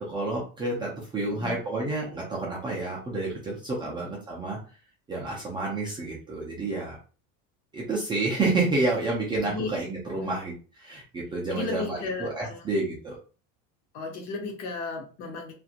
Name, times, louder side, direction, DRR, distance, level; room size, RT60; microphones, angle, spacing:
voice 1, 0.0-4.6 5.1-7.0 7.7-13.2, right 2 dB, 15° right, -4 dB, 0.4 m, -29 dB
voice 2, 9.4-9.7 10.1-10.3 11.5-12.7 13.9-15.5, left 3 dB, 50° left, 1 dB, 0.9 m, -35 dB
2.8 x 2.4 x 2.5 m, 0.37 s
cardioid pair, 165°, 35 cm